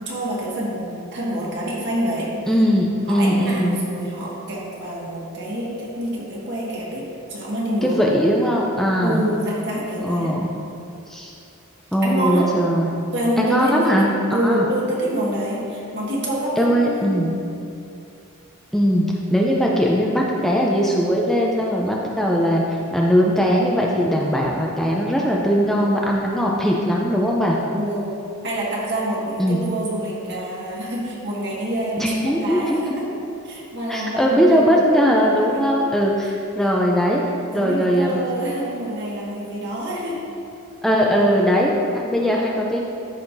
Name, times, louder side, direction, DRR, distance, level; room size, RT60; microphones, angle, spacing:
voice 1, 0.0-2.3 3.1-8.0 9.0-10.3 12.0-12.5 13.1-17.2 27.7-28.2 28.4-33.2 33.4-34.9 35.5-35.7 36.2-36.3 37.5-40.3, right 1 dB, 55° right, -5 dB, 1.8 m, -27 dB
voice 2, 2.5-3.8 7.8-9.2 10.0-10.5 11.1-11.3 11.9-12.9 13.4-14.6 16.6-17.3 18.7-27.6 29.4-29.6 32.0-32.8 33.9-37.2 37.5-38.2 40.8-42.8, equal, ahead, -3 dB, 0.5 m, -19 dB
13.5 x 5.6 x 2.7 m, 2.7 s
head